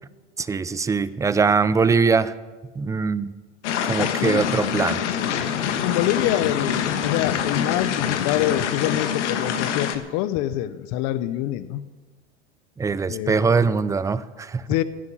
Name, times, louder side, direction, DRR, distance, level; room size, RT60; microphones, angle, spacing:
voice 1, 0.4-2.3 2.8-3.3 3.8-5.0 12.8-14.7, right 5 dB, 10° right, 15 dB, 0.4 m, -22 dB
sound 1, 3.6-10.0, left 8 dB, 75° left, 1.5 m, -25 dB
voice 2, 4.0-4.5 5.8-11.8 13.1-13.6 14.7-14.8, left 13 dB, 50° left, 14 dB, 0.9 m, -26 dB
15.5 x 9.6 x 7.3 m, 1.3 s
hypercardioid pair, 110°, 36 cm